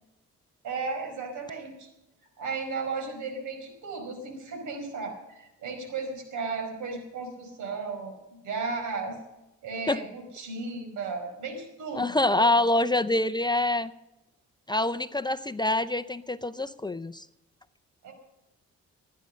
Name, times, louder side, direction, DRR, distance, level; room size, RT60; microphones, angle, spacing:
voice 1, 0.6-1.9 2.4-9.2 9.6-12.5 18.0-18.1, right 4 dB, 75° right, 4 dB, 4.8 m, -35 dB
voice 2, 11.9-13.9 14.7-17.3, left 2 dB, 15° left, 10 dB, 0.5 m, -25 dB
15.5 x 9.7 x 6.4 m, 0.94 s
cardioid pair, 90°, 30 cm